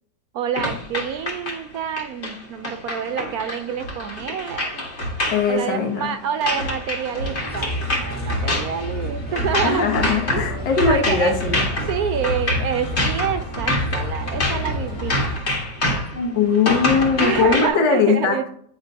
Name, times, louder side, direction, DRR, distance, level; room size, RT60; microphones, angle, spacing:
voice 1, 0.3-4.8 5.5-9.9 10.9-11.3 11.9-15.2 17.2-18.5, right 8 dB, 70° right, 9 dB, 0.9 m, -27 dB
sound 1, 0.6-17.7, left 1 dB, 40° left, 1.7 m, -26 dB
voice 2, 5.3-6.1 9.6-11.6 16.4-18.4, left 5 dB, 80° left, 3 dB, 1.8 m, -20 dB
Bird, 7.2-15.4, left 1 dB, 5° left, 1.7 m, -31 dB
9.4 x 4.4 x 2.7 m, 0.62 s
omnidirectional pair, 1.9 m